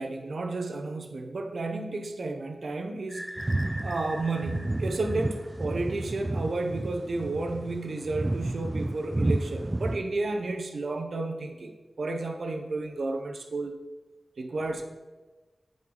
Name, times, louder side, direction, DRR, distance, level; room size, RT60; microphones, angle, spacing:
voice 1, 0.0-3.3 3.8-13.8 14.4-14.8, right 2 dB, 75° right, 5 dB, 0.8 m, -32 dB
sound 1, 3.1-5.9, equal, ahead, 0.7 m, -42 dB
sound 2, 3.4-10.0, right 2 dB, 25° right, 0.3 m, -31 dB
8.8 x 5.4 x 3.9 m, 1.2 s
wide cardioid pair, 100°, 0 cm